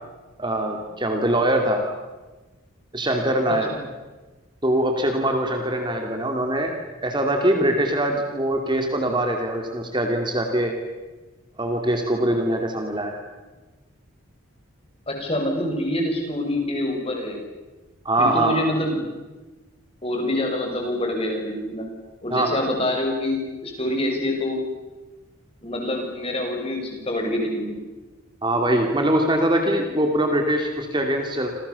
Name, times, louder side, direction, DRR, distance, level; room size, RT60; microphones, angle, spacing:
voice 1, 0.4-1.9 2.9-3.7 4.6-6.7 7.0-10.7 11.6-13.2 18.0-18.6 22.3-22.5 28.4-31.5, right 1 dB, 20° right, 3 dB, 2.8 m, -22 dB
voice 2, 15.1-17.4 18.2-19.0 20.0-21.9 22.2-24.6 25.6-27.8, left 1 dB, 25° left, 2 dB, 6.8 m, -26 dB
29.0 x 28.0 x 7.1 m, 1.2 s
head